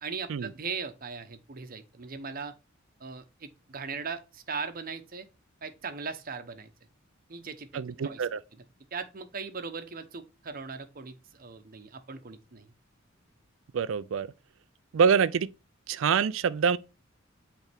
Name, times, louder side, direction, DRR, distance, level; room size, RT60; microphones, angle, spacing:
voice 1, 0.0-2.5 3.0-5.3 5.6-6.7 7.3-8.3 8.9-12.7, right 5 dB, 45° right, 0.9 m, -39 dB
voice 2, 7.7-8.4 13.7-14.3 14.9-15.5 15.9-16.8, right 6 dB, 75° right, 0.4 m, -25 dB
8.1 x 3.5 x 3.5 m
head